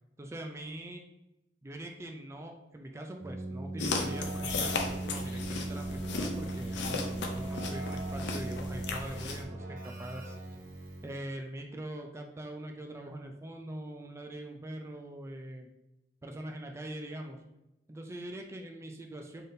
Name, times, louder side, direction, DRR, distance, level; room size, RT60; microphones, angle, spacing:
voice 1, 0.2-1.0 1.6-10.4 11.0-15.7 16.2-17.4 17.9-19.4, right 1 dB, 15° right, 3 dB, 0.3 m, -42 dB
Keyboard (musical), 3.1-11.3, right 2 dB, 50° right, 0.9 m, -38 dB
sound 1, 3.8-9.4, left 3 dB, 70° left, 0.6 m, -36 dB
sound 2, 4.6-9.7, right 1 dB, 5° left, 1.4 m, -52 dB
3.9 x 3.5 x 2.6 m, 0.89 s
head